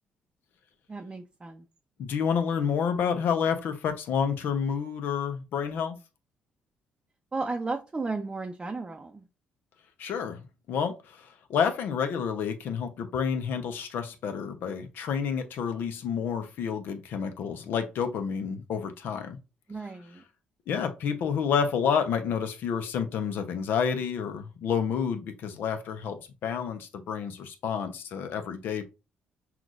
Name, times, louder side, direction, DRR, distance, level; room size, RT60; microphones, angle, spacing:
voice 1, 0.9-1.7 7.3-9.2 19.7-20.2, right 3 dB, 25° right, 0.6 m, -34 dB
voice 2, 2.0-6.0 10.0-19.4 20.7-28.8, left 7 dB, 70° left, 0.8 m, -29 dB
5.9 x 2.5 x 2.5 m
supercardioid pair, 75°, 4 cm